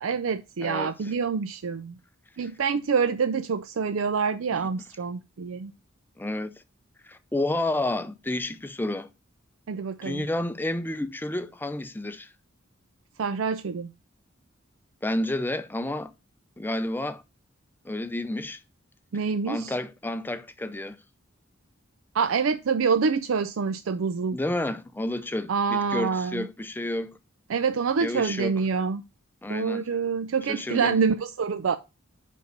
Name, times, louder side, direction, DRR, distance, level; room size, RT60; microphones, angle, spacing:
voice 1, 0.0-2.0 2.4-5.7 9.7-10.3 13.2-13.9 19.1-19.7 22.1-24.4 25.5-26.5 27.5-29.0 29.5-31.8, right 5 dB, 85° right, 0.5 m, -26 dB
voice 2, 6.2-6.5 7.0-9.1 10.0-12.3 15.0-16.1 16.6-17.2 17.8-18.6 19.5-21.0 24.3-27.2 28.0-28.6 29.4-29.9 30.5-31.0, left 1 dB, 10° left, 0.5 m, -30 dB
5.3 x 5.3 x 6.5 m
head